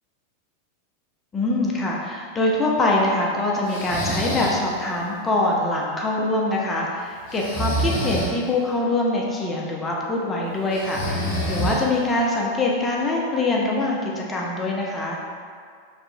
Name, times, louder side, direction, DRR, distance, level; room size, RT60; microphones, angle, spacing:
voice 1, 1.3-15.2, left 2 dB, 20° left, -2 dB, 0.3 m, -24 dB
Breathing, 3.7-4.6 7.3-8.3 10.7-12.1, right 1 dB, 55° left, 0.7 m, -26 dB
2.7 x 2.3 x 2.2 m, 2.1 s
figure-of-eight pair, 90°, 0 cm